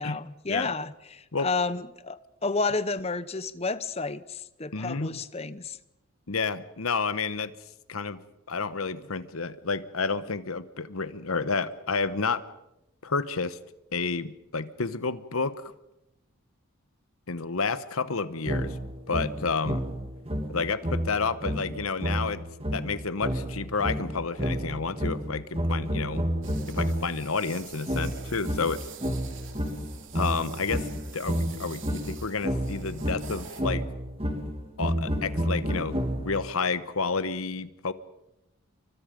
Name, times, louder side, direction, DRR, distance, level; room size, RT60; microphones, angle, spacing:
voice 1, 0.0-5.8, left 3 dB, 30° left, 15 dB, 0.8 m, -31 dB
voice 2, 4.7-5.2 6.3-7.5 7.9-8.2 8.5-12.4 13.0-13.6 13.9-15.7 17.3-18.8 19.1-19.8 20.5-22.4 22.7-26.3 26.7-28.8 30.1-30.9 31.1-33.9 34.8-37.9, left 4 dB, 85° left, 14 dB, 1.1 m, -30 dB
sound 1, 18.5-27.2 27.9-36.5, equal, 25° right, 2.4 m, -30 dB
sound 2, 26.4-33.6, right 7 dB, 60° right, 2.7 m, -46 dB
29.0 x 24.0 x 5.2 m, 0.89 s
head